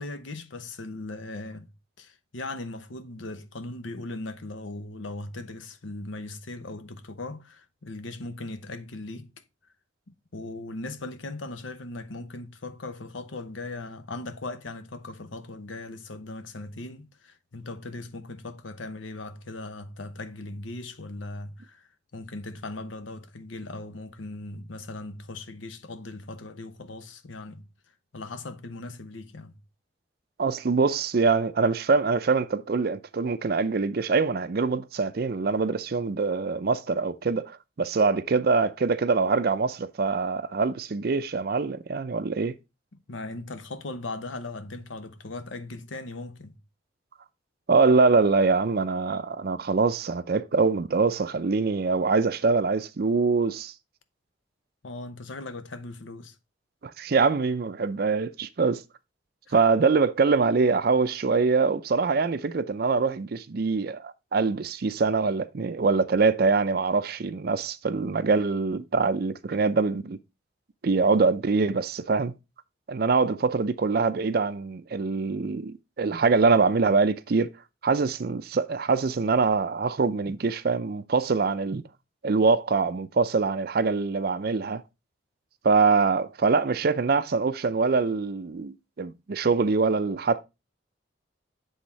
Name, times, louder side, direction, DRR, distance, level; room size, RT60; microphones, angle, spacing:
voice 1, 0.0-1.7 2.0-9.3 10.1-27.7 28.1-29.6 43.1-46.6 54.8-56.4 59.5-59.6, left 2 dB, 90° left, 0.9 m, -38 dB
voice 2, 30.4-42.5 47.7-53.7 57.0-58.8 59.5-70.2 70.8-72.3 72.9-77.5 77.8-81.8 82.2-84.8 85.6-90.4, right 4 dB, 50° right, 0.5 m, -24 dB
7.9 x 3.6 x 4.1 m
head